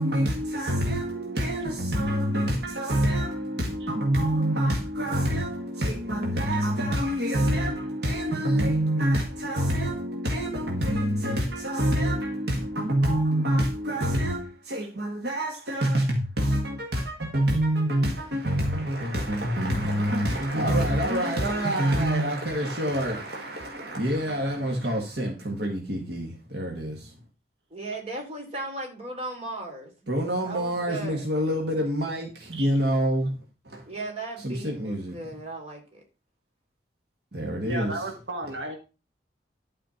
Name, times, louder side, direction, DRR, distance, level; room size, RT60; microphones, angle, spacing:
voice 1, 0.0-27.1 30.1-33.3 33.7-33.8 34.4-35.2 37.3-38.0, right 1 dB, 65° right, 1.9 m, -26 dB
voice 2, 27.7-29.9 30.4-31.2 33.9-36.0, right 2 dB, 35° right, 3.5 m, -36 dB
voice 3, 37.6-38.8, right 1 dB, 80° right, 1.7 m, -33 dB
12.0 x 5.0 x 5.7 m
head